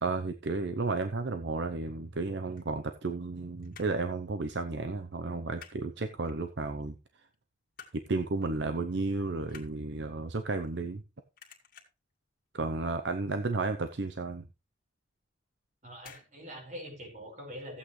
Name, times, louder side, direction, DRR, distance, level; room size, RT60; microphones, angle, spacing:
voice 1, 0.0-7.0 7.9-11.0 12.5-14.5, right 3 dB, 70° right, 0.7 m, -33 dB
sound 1, 2.6-3.3 3.6-4.1 4.5-4.7 5.0-5.8 6.2-6.8 7.2-8.1 8.4-8.6 8.9-11.1 11.3-12.1 12.5-12.9 13.1-13.2 13.6-13.7 14.1-14.2 15.1-15.4 16.0-16.3 16.6-16.7, left 7 dB, 50° left, 2.1 m, -53 dB
voice 2, 15.8-17.8, equal, 45° right, 4.9 m, -44 dB
14.5 x 8.5 x 3.2 m
head